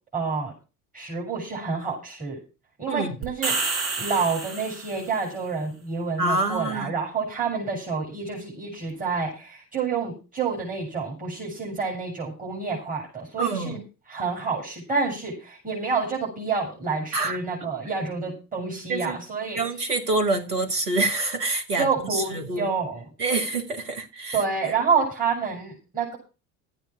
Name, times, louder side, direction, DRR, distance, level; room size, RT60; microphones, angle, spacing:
voice 1, 0.1-0.5 0.9-2.4 2.8-13.8 14.1-19.6 21.8-23.0 24.3-26.2, right 5 dB, 15° right, -3 dB, 6.8 m, -28 dB
sound 1, 3.2-5.2, right 4 dB, 50° right, 5.6 m, -29 dB
voice 2, 6.2-6.9 13.4-13.8 17.1-17.7 18.9-19.2 19.5-22.7 23.2-24.7, right 2 dB, 80° right, 4 dB, 2.2 m, -27 dB
13.0 x 9.0 x 6.1 m, 0.31 s
figure-of-eight pair, 70°, 45 cm